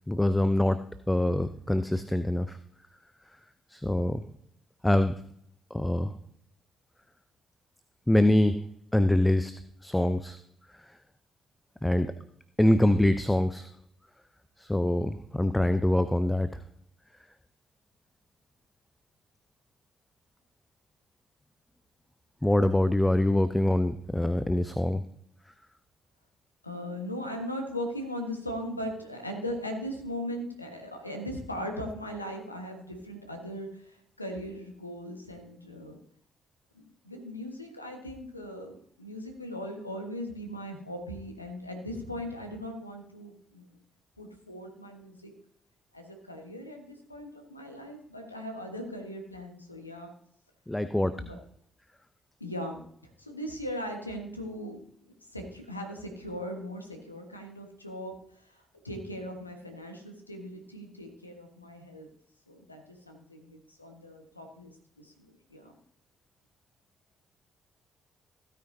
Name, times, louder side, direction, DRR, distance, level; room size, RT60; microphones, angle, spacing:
voice 1, 0.1-0.8 1.1-2.6 3.7-4.2 4.8-5.2 5.7-6.1 8.1-8.6 8.9-9.5 9.8-10.4 11.8-12.1 12.6-13.7 14.6-16.6 22.4-25.0 50.7-51.2, left 1 dB, 10° left, 11 dB, 0.7 m, -24 dB
voice 2, 26.6-36.0 36.7-43.8 44.2-45.3 45.9-50.1 51.1-51.4 52.4-52.8 53.2-62.1 62.5-65.7, equal, 90° left, 3 dB, 1.4 m, -39 dB
16.0 x 9.5 x 2.7 m, 0.68 s
figure-of-eight pair, 40°, 0 cm